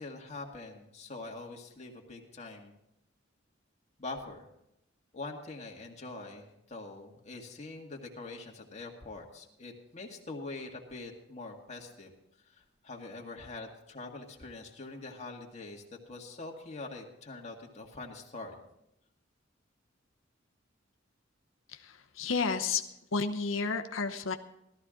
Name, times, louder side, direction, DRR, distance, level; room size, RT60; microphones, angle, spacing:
voice 1, 0.0-2.7 4.0-4.5 5.1-12.1 12.5-18.6, left 3 dB, 35° left, 1 dB, 1.9 m, -44 dB
voice 2, 21.7-22.8 23.1-24.4, left 4 dB, 90° left, 6 dB, 0.8 m, -31 dB
16.5 x 13.0 x 3.8 m, 0.83 s
head